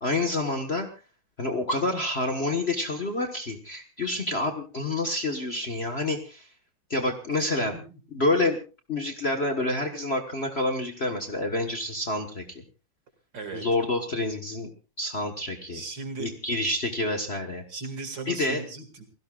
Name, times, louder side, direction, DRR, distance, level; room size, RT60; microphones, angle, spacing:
voice 1, 0.0-0.9 1.4-6.5 6.9-7.7 8.1-8.6 8.9-12.6 13.5-14.7 15.0-15.8 16.2-17.6 18.3-18.6, left 2 dB, 35° left, 5 dB, 1.4 m, -28 dB
voice 2, 7.3-8.0 13.3-13.7 15.7-16.3 17.7-19.1, right 4 dB, 55° right, 6 dB, 2.9 m, -37 dB
28.5 x 17.0 x 2.4 m, 0.33 s
omnidirectional pair, 2.4 m